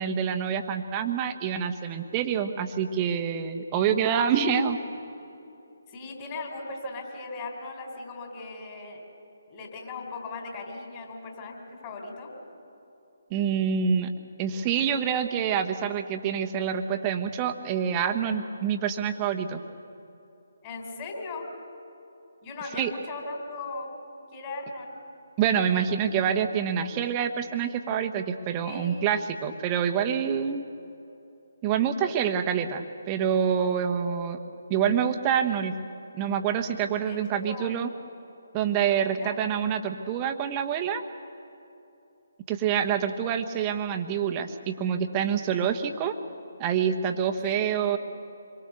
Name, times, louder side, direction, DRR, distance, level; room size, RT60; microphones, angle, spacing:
voice 1, 0.0-4.8 13.3-14.1 14.4-19.6 22.8-22.9 25.4-30.6 31.6-34.4 34.7-35.7 36.2-37.9 38.5-41.0 42.5-46.2 46.6-48.0, right 8 dB, 20° right, 6 dB, 1.3 m, -26 dB
voice 2, 5.9-9.0 9.5-12.3 20.6-21.5 22.4-23.9 24.3-24.9 28.6-29.1 37.0-37.7 39.2-39.4 47.4-47.6, left 3 dB, 25° left, 2 dB, 4.0 m, -38 dB
26.0 x 23.0 x 6.9 m, 2.8 s
figure-of-eight pair, 145°, 0 cm